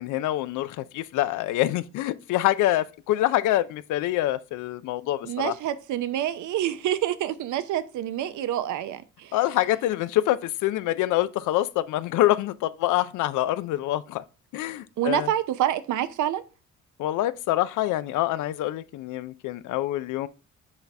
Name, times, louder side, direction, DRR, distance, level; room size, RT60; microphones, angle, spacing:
voice 1, 0.0-5.5 9.3-14.2 14.5-15.3 17.0-20.3, left 14 dB, 85° left, 0.5 m, -26 dB
voice 2, 5.2-9.4 15.0-16.4, right 11 dB, 75° right, 0.6 m, -27 dB
7.0 x 4.1 x 3.3 m
cardioid pair, 90°, 30 cm